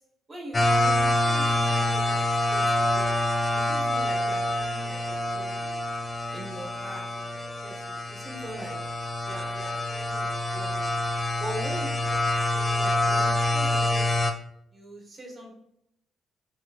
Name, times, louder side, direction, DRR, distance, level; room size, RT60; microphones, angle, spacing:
voice 1, 0.3-3.1 3.5-5.7 6.3-10.9 11.4-12.2 12.5-14.2 14.7-15.5, right 1 dB, 25° right, -1 dB, 1.2 m, -42 dB
sound 1, 0.5-14.3, left 1 dB, 25° left, 0.4 m, -26 dB
2.8 x 2.7 x 2.5 m, 0.78 s
cardioid pair, 90°, 0 cm